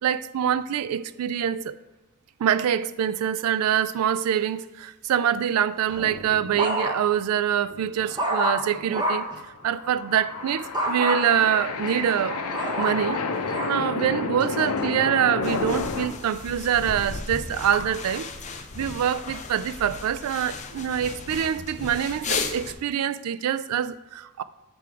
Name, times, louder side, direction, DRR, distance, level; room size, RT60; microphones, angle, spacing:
voice 1, 0.0-1.8 2.4-9.3 9.6-12.4 12.8-13.2 13.7-18.3 18.7-24.4, right 9 dB, 85° right, 0.3 m, -25 dB
sound 1, 5.9-7.2 7.7-9.4 10.7-11.2 11.8-13.8 14.4-14.8, equal, 20° right, 0.8 m, -28 dB
sound 2, 9.7-16.1, left 4 dB, 80° left, 0.6 m, -30 dB
sound 3, 15.4-22.7, left 4 dB, 30° left, 0.5 m, -35 dB
7.5 x 3.6 x 4.6 m
head